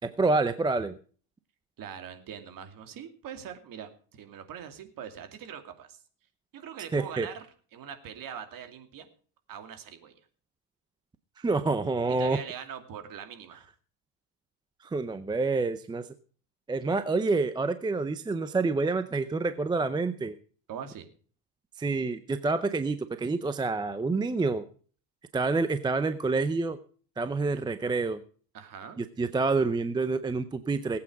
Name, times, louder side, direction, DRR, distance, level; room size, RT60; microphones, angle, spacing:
voice 1, 0.0-0.9 6.9-7.3 11.4-12.4 14.8-16.1 16.7-20.4 21.8-24.6 25.3-26.8 27.2-28.2 29.0-31.0, right 3 dB, 10° right, 12 dB, 0.5 m, -28 dB
voice 2, 1.8-6.0 6.5-7.5 7.7-9.1 9.5-10.1 12.1-13.7 20.7-21.1 28.5-29.0, right 8 dB, 40° right, 8 dB, 2.6 m, -42 dB
20.0 x 8.7 x 4.8 m, 0.42 s
supercardioid pair, 130°, 49 cm